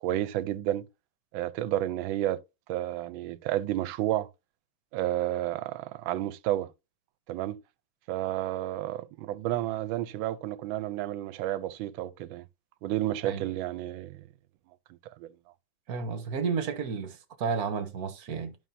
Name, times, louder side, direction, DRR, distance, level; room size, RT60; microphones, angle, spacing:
voice 1, 0.0-0.9 1.3-2.4 2.7-4.3 4.9-6.7 7.3-7.6 8.1-12.4 12.8-14.3 15.2-15.3, right 13 dB, 80° right, 1.4 m, -31 dB
voice 2, 15.9-18.6, right 5 dB, 55° right, 1.3 m, -32 dB
11.0 x 5.7 x 2.6 m
omnidirectional pair, 2.2 m